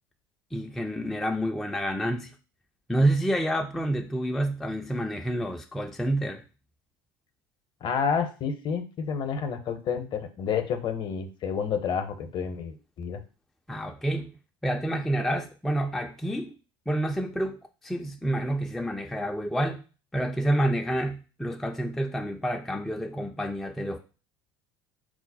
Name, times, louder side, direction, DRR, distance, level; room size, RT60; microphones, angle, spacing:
voice 1, 0.5-2.3 2.9-6.4 13.7-14.3 14.6-16.5 16.9-19.8 20.1-24.0, right 1 dB, 5° left, 0.3 m, -28 dB
voice 2, 7.8-13.2, left 6 dB, 40° left, 0.7 m, -29 dB
4.7 x 2.0 x 4.0 m
figure-of-eight pair, 65°, 13 cm